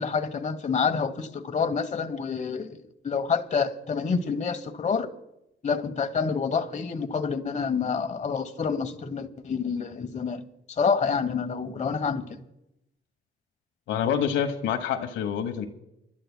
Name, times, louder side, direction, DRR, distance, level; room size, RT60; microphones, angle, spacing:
voice 1, 0.0-5.1 5.6-12.4, left 5 dB, 35° left, 8 dB, 1.1 m, -28 dB
voice 2, 13.9-15.7, left 8 dB, 80° left, 7 dB, 1.1 m, -27 dB
29.5 x 12.5 x 2.2 m, 0.88 s
cardioid pair, 90°, 20 cm